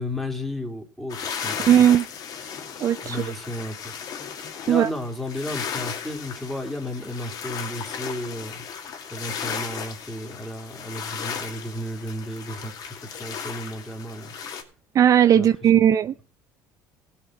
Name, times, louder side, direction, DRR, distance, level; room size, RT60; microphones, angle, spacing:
voice 1, 0.0-1.9 3.0-3.9 4.7-8.6 9.1-12.9 13.2-14.3 15.3-15.5 15.7-15.8, left 1 dB, ahead, 2 dB, 3.3 m, -33 dB
sound 1, 1.1-14.6, left 7 dB, 55° left, 2.4 m, -35 dB
voice 2, 1.7-2.1 2.8-3.2 4.7-4.9 14.9-16.3, right 10 dB, 45° right, 12 dB, 0.5 m, -17 dB
16.5 x 5.8 x 5.7 m, 0.39 s
supercardioid pair, 90°, 8 cm